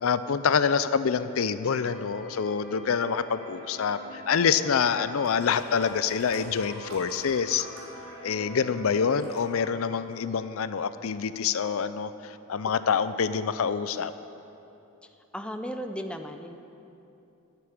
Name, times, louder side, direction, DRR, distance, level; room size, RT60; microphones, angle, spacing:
voice 1, 0.0-7.7 8.2-14.1, left 6 dB, 65° left, 13 dB, 0.5 m, -26 dB
sound 1, 1.6-9.7, left 1 dB, 35° left, 2.8 m, -45 dB
sound 2, 5.2-8.7 9.0-9.4 10.1-10.2, right 1 dB, 65° right, 3.5 m, -47 dB
voice 2, 15.0-16.6, equal, 5° left, 6 dB, 0.6 m, -36 dB
11.0 x 9.2 x 9.5 m, 2.8 s
head